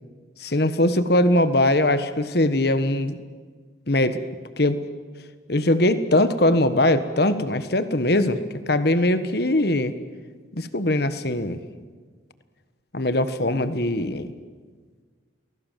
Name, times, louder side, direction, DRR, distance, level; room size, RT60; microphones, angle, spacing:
voice 1, 0.4-3.2 3.9-4.2 4.6-4.8 5.5-8.4 8.7-9.9 10.5-11.6 12.9-14.3, left 1 dB, 55° left, 12 dB, 1.5 m, -21 dB
29.5 x 21.0 x 7.6 m, 1.5 s
head